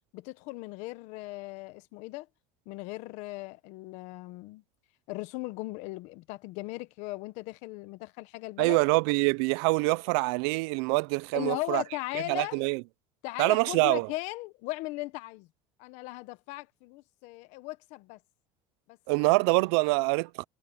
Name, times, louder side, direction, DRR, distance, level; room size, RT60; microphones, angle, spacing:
voice 1, 0.1-2.3 2.7-4.6 5.1-8.8 11.3-12.6 13.2-15.5 15.8-18.2 18.9-19.0, left 20 dB, 65° left, 1.2 m, -38 dB
voice 2, 8.6-11.8 12.3-12.8 13.4-14.1 19.1-20.4, right 27 dB, 80° right, 0.5 m, -25 dB
cardioid pair, 155°, 13 cm